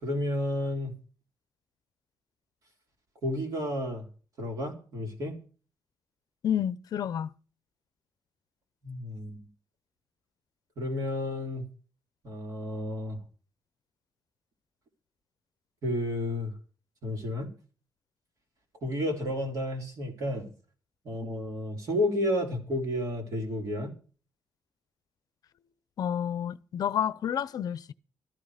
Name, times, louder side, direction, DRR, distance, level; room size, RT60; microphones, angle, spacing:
voice 1, 0.0-0.9 3.2-4.1 4.4-5.4 8.8-9.4 10.8-11.6 12.2-13.2 15.8-16.6 17.0-17.5 18.8-20.5 21.0-23.9, left 1 dB, 50° right, 3.7 m, -31 dB
voice 2, 6.4-7.3 26.0-27.9, left 9 dB, 60° left, 0.6 m, -30 dB
14.5 x 13.5 x 5.0 m
wide cardioid pair, 170°, 7 cm